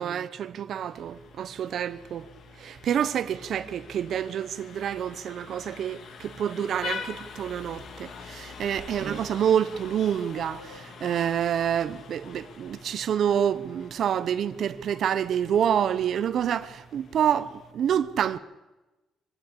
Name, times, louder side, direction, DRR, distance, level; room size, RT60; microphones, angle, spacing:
voice 1, 0.0-2.3 2.6-18.4, right 9 dB, 65° right, 0.9 m, -27 dB
Vehicle horn car horn honking, 0.9-17.7, left 6 dB, 65° left, 1.8 m, -45 dB
25.5 x 11.5 x 8.7 m
cardioid pair, 90°, 0 cm